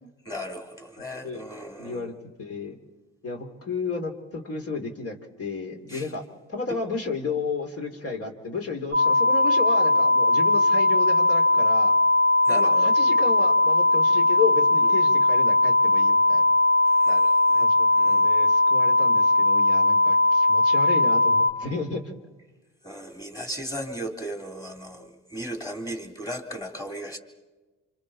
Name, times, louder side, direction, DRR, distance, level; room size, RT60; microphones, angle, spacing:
voice 1, 0.3-2.0 5.9-6.1 6.7-6.8 12.5-12.9 17.0-17.6 17.9-18.5 22.8-27.2, equal, 10° left, 3 dB, 3.6 m, -36 dB
voice 2, 1.8-2.8 3.2-6.2 6.5-11.9 12.5-16.4 17.6-22.1, left 4 dB, 50° left, 3 dB, 3.3 m, -32 dB
sound 1, 8.9-21.5, left 2 dB, 35° left, 3.0 m, -19 dB
28.0 x 26.5 x 4.3 m, 1.2 s
cardioid pair, 90°, 30 cm